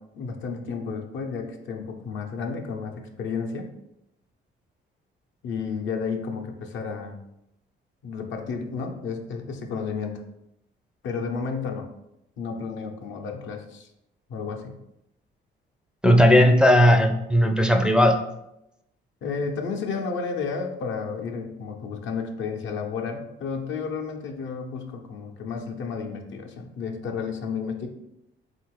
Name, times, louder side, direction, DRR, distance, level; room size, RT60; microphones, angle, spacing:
voice 1, 0.1-3.7 5.4-7.2 8.0-10.2 11.0-11.9 12.4-13.9 14.3-14.8 19.2-27.9, left 5 dB, 70° left, 3 dB, 0.7 m, -32 dB
voice 2, 16.0-18.2, equal, 5° right, 3 dB, 0.4 m, -17 dB
3.7 x 2.5 x 4.6 m, 0.85 s
cardioid pair, 90°, 20 cm